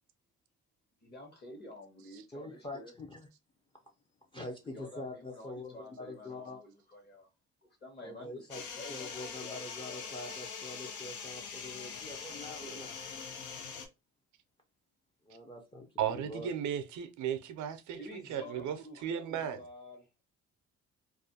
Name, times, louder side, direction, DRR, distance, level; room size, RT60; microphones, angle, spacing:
voice 1, 1.0-2.9 4.3-4.5 4.7-7.3 7.6-10.1 17.9-20.2, left 1 dB, 35° left, 1.1 m, -50 dB
voice 2, 2.3-3.3 4.3-6.6 8.0-8.6 8.9-13.2 15.2-16.5, left 2 dB, 15° left, 0.5 m, -45 dB
sound 1, 8.5-13.9, left 6 dB, 75° left, 0.6 m, -43 dB
voice 3, 16.0-18.8 19.0-19.6, right 9 dB, 75° right, 0.5 m, -35 dB
2.4 x 2.2 x 2.6 m
cardioid pair, 90°, 30 cm